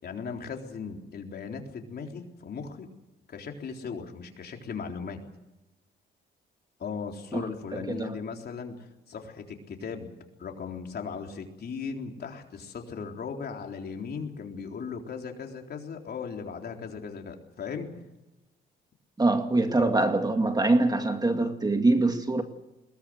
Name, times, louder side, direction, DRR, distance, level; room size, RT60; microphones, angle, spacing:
voice 1, 0.0-2.9 3.3-5.2 6.8-10.1 10.4-17.9 19.8-19.9, left 5 dB, 55° left, 3.8 m, -37 dB
voice 2, 7.7-8.1 19.2-22.4, right 2 dB, 20° right, 2.1 m, -24 dB
21.5 x 19.0 x 8.1 m
cardioid pair, 90°, 20 cm